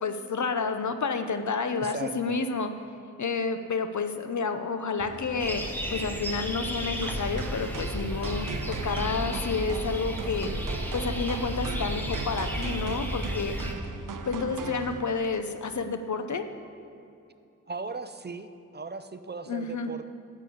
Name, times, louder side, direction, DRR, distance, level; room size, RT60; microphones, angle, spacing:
voice 1, 0.0-2.7 3.2-5.6 5.9-10.5 10.9-13.6 14.3-16.4 19.5-19.9, left 4 dB, 65° left, 8 dB, 0.8 m, -30 dB
voice 2, 1.8-2.4 17.7-20.1, right 4 dB, 30° right, 10 dB, 0.5 m, -38 dB
sound 1, 5.0-15.0, left 2 dB, 25° left, 0.8 m, -44 dB
sound 2, 5.4-13.7, equal, 5° left, 1.2 m, -33 dB
sound 3, 7.0-15.4, right 6 dB, 80° right, 0.6 m, -39 dB
12.0 x 5.8 x 8.5 m, 2.7 s
wide cardioid pair, 85°, 32 cm